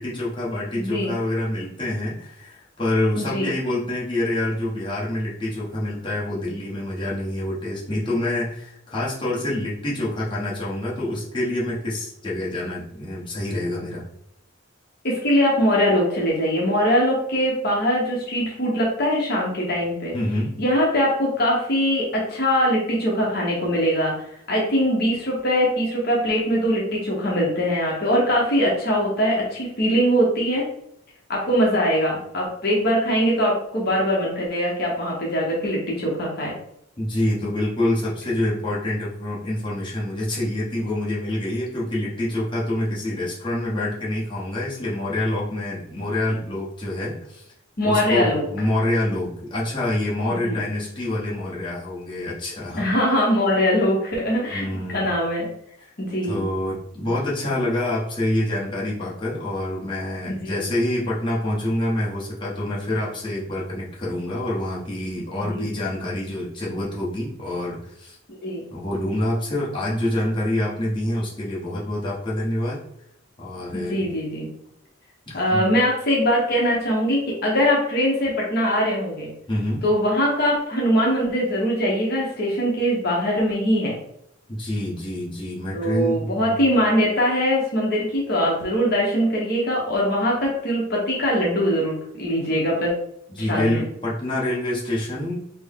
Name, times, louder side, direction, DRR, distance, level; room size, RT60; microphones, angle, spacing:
voice 1, 0.0-14.0 20.1-20.5 37.0-47.5 47.8-52.9 54.5-55.1 55.8-55.9 56.2-68.2 68.7-72.8 73.4-74.0 75.3-75.8 79.5-79.8 84.5-86.6 93.3-95.4, left 1 dB, 25° left, -7 dB, 1.1 m, -26 dB
voice 2, 0.8-1.1 3.2-3.5 15.0-20.1 20.6-24.1 24.5-30.7 31.3-36.6 47.8-48.4 50.4-50.6 52.7-55.5 56.0-56.4 60.3-60.6 65.3-65.7 68.4-68.6 73.7-74.5 75.3-79.3 79.8-84.0 85.7-92.9 93.4-93.8, equal, 55° left, -3 dB, 0.9 m, -22 dB
4.2 x 2.1 x 3.5 m, 0.75 s
head